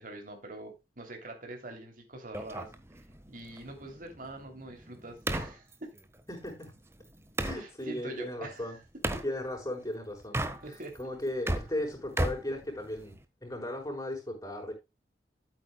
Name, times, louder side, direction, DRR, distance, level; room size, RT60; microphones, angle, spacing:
voice 1, 0.0-2.7 3.3-5.9 7.5-8.8 9.1-9.2 10.6-11.0, right 2 dB, 50° right, 3.0 m, -44 dB
sound 1, 2.3-7.6 9.0-9.3 10.2-11.0 11.3-13.2, right 1 dB, 15° right, 1.3 m, -35 dB
voice 2, 6.3-6.7 7.4-8.8 9.2-10.4 11.0-13.1 13.4-14.7, left 1 dB, 20° left, 6.0 m, -36 dB
13.5 x 9.1 x 2.3 m
head